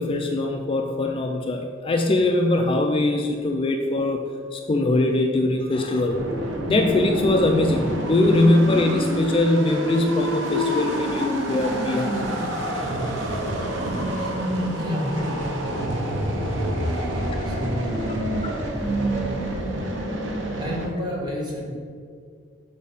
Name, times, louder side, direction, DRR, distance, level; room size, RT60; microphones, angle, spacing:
voice 1, 0.0-4.2 4.5-6.2 6.7-12.2 18.5-18.6, left 2 dB, 30° left, 3 dB, 0.4 m, -22 dB
sound 1, 6.1-20.9, right 1 dB, 80° right, 1.1 m, -27 dB
voice 2, 14.8-15.2 16.9-17.1 17.4-18.2 20.6-21.7, equal, 25° right, -4 dB, 1.4 m, -31 dB
6.1 x 4.2 x 5.4 m, 2.1 s
head